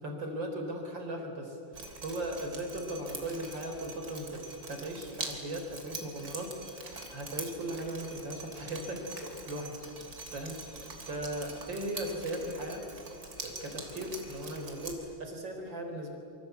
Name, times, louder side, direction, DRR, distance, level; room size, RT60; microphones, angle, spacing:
voice 1, 0.0-9.8 10.3-12.9 13.4-16.2, right 1 dB, 70° right, 3 dB, 4.7 m, -38 dB
Drip, 1.7-14.9, right 3 dB, 50° right, 3.7 m, -44 dB
27.0 x 25.0 x 8.3 m, 2.6 s
omnidirectional pair, 2.1 m